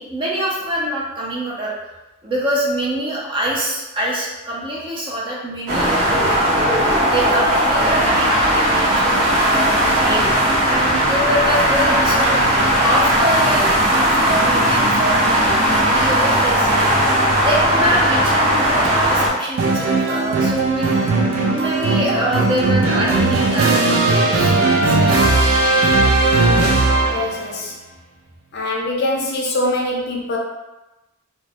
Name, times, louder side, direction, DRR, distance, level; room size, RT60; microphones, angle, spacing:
voice 1, 0.0-1.7 2.2-6.4 7.0-10.2 10.6-21.0 21.5-25.1, equal, 25° right, -5 dB, 0.5 m, -25 dB
sound 1, 5.7-19.3, right 1 dB, 45° right, 0.8 m, -17 dB
sound 2, 19.6-27.4, right 2 dB, 80° right, 0.4 m, -17 dB
voice 2, 25.9-26.3 27.1-27.7 28.5-30.4, left 1 dB, 50° left, -2 dB, 0.5 m, -24 dB
2.2 x 2.0 x 2.7 m, 1.0 s
head